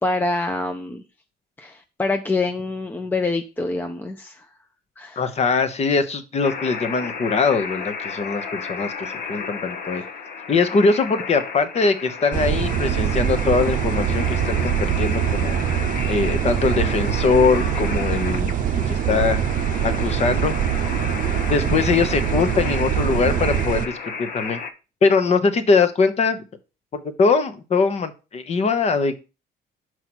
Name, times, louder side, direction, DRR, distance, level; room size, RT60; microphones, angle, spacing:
voice 1, 0.0-1.0 1.6-4.4 5.0-5.2, left 3 dB, 10° left, 6 dB, 0.7 m, -25 dB
voice 2, 5.2-10.0 10.5-15.6 16.1-19.4 19.8-20.5 21.4-24.6 25.0-26.4 26.9-29.1, left 4 dB, 40° left, 10 dB, 1.1 m, -21 dB
sound 1, 6.4-24.7, left 5 dB, 60° left, 1.2 m, -33 dB
sound 2, 12.3-23.9, right 9 dB, 50° right, 0.6 m, -23 dB
5.7 x 4.6 x 6.2 m, 0.31 s
cardioid pair, 110°, 17 cm